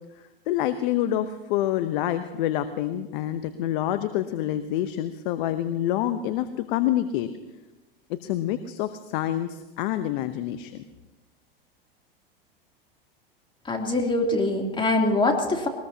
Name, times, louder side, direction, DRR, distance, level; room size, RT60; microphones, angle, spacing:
voice 1, 0.5-7.3 8.1-10.8, left 12 dB, 60° left, 11 dB, 0.9 m, -27 dB
voice 2, 13.7-15.7, left 2 dB, 15° left, 1 dB, 3.0 m, -23 dB
21.5 x 20.0 x 2.8 m, 1.1 s
hypercardioid pair, 95°, 29 cm